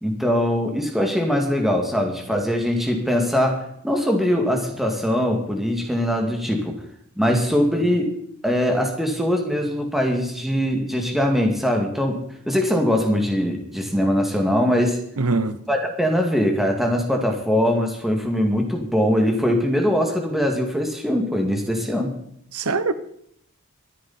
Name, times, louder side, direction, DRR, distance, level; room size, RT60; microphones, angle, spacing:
voice 1, 0.0-6.8 7.2-8.1 8.4-15.0 15.7-22.2, equal, ahead, 2.2 m, -22 dB
voice 2, 15.2-15.6 22.5-22.9, right 3 dB, 90° right, 1.0 m, -22 dB
23.0 x 9.7 x 4.3 m
head